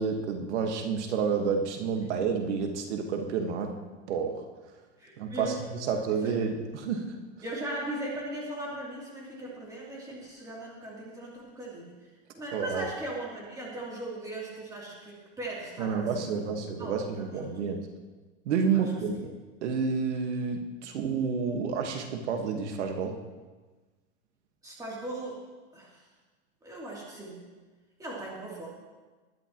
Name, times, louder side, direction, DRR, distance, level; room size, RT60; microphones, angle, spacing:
voice 1, 0.0-3.7 4.1-4.4 5.2-5.5 5.8-7.1 12.5-12.9 15.8-17.8 18.4-19.3 19.6-23.2, right 6 dB, 80° right, 4 dB, 1.6 m, -29 dB
voice 2, 5.0-5.6 6.1-6.4 7.4-11.9 12.3-16.5 16.8-17.6 18.7-18.8 24.6-25.4 25.7-26.0 26.6-27.4 28.0-28.7, right 1 dB, 10° right, -5 dB, 3.0 m, -38 dB
20.0 x 11.0 x 3.0 m, 1.3 s
supercardioid pair, 160°, 34 cm